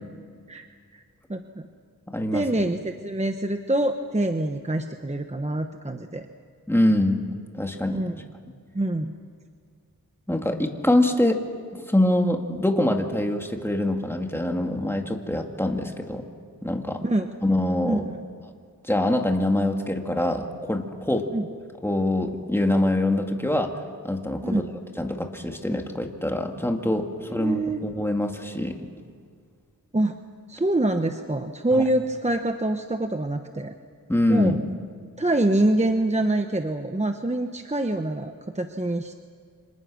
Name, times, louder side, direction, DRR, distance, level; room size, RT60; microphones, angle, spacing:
voice 1, 1.3-1.7 2.3-6.3 7.9-8.1 8.7-9.1 17.0-17.3 17.8-18.1 21.3-21.5 24.4-24.7 27.4-27.8 29.9-30.2 30.5-33.7 34.3-34.6 35.2-39.1, right 1 dB, 20° right, 6 dB, 1.1 m, -25 dB
voice 2, 2.1-2.5 6.7-7.2 7.5-8.0 8.4-8.5 10.3-11.4 11.7-16.2 16.6-17.0 17.4-18.0 18.8-21.3 21.8-23.7 24.0-24.6 25.0-28.9 31.7-31.8 34.1-34.6, left 1 dB, 5° left, 3 dB, 2.4 m, -24 dB
29.5 x 26.5 x 6.4 m, 2.1 s
wide cardioid pair, 80°, 36 cm